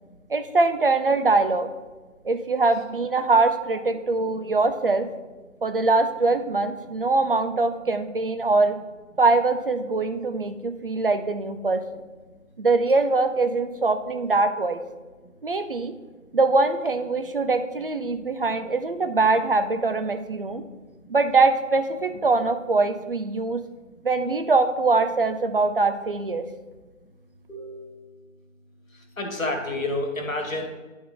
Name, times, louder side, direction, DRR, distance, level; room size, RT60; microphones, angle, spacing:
voice 1, 0.3-1.7 2.2-5.1 5.6-8.8 9.2-11.8 12.6-14.8 15.4-15.9 16.3-20.6 21.1-23.6 24.0-26.4, right 3 dB, 45° right, 8 dB, 0.5 m, -22 dB
voice 2, 27.5-28.1 29.2-30.7, left 2 dB, 85° left, 4 dB, 1.7 m, -29 dB
10.5 x 3.9 x 3.8 m, 1.2 s
figure-of-eight pair, 150°, 39 cm